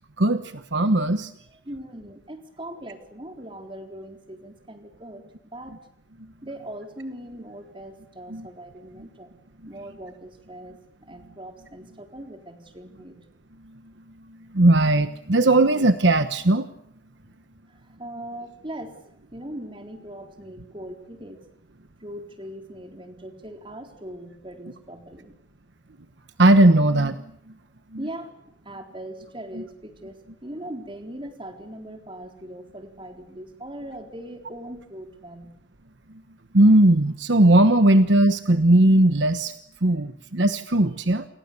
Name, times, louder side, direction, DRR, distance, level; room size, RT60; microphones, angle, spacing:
voice 1, 0.2-1.3 8.3-8.5 13.6-13.8 14.3-16.7 26.4-27.2 27.9-28.0 29.5-29.6 36.5-41.3, right 1 dB, 70° right, 10 dB, 1.2 m, -18 dB
voice 2, 1.7-5.8 6.4-9.3 9.7-10.7 11.0-13.6 17.7-19.0 19.3-21.4 22.0-25.4 28.0-28.3 28.6-35.5, right 1 dB, 25° right, 4 dB, 4.1 m, -40 dB
30.0 x 28.5 x 7.0 m, 0.71 s
head